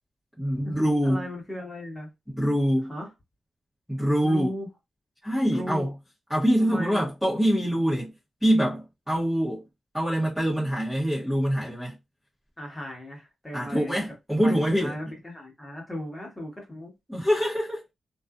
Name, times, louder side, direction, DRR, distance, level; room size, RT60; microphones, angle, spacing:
voice 1, 0.4-1.3 2.3-2.9 3.9-4.5 5.2-5.9 6.3-8.1 8.4-9.6 9.9-11.9 13.5-15.0 17.1-17.8, equal, ahead, 1.0 m, -24 dB
voice 2, 1.0-2.1 2.9-3.1 4.2-4.7 5.5-5.9 6.6-7.1 12.6-14.1 14.4-16.9, left 1 dB, 15° left, 1.2 m, -37 dB
2.5 x 2.3 x 2.4 m
wide cardioid pair, 135°, 0 cm